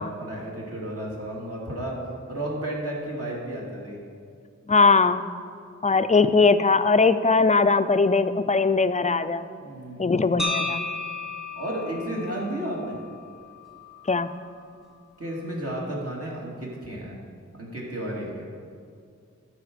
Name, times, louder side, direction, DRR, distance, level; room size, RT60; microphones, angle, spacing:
voice 1, 0.0-2.0 2.3-4.0 9.6-10.1 11.6-13.0 15.2-17.2 17.6-18.5, right 1 dB, 50° right, -4 dB, 2.6 m, -32 dB
voice 2, 4.7-5.3 5.8-9.5 10.0-10.8 14.1-14.3, left 4 dB, 25° left, 12 dB, 0.4 m, -20 dB
sound 1, 10.4-14.5, left 2 dB, ahead, 1.1 m, -34 dB
13.5 x 5.0 x 6.3 m, 2.3 s
wide cardioid pair, 80°, 29 cm